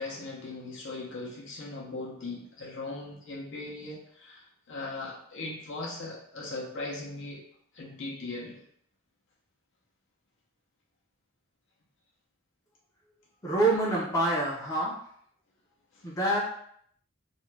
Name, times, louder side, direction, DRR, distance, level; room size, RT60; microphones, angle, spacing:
voice 1, 0.0-4.4 4.7-7.4 7.7-8.6, left 2 dB, 60° left, -3 dB, 0.6 m, -39 dB
voice 2, 13.4-14.9 16.0-16.4, right 2 dB, 15° left, -5 dB, 0.5 m, -26 dB
2.5 x 2.2 x 3.1 m, 0.65 s
head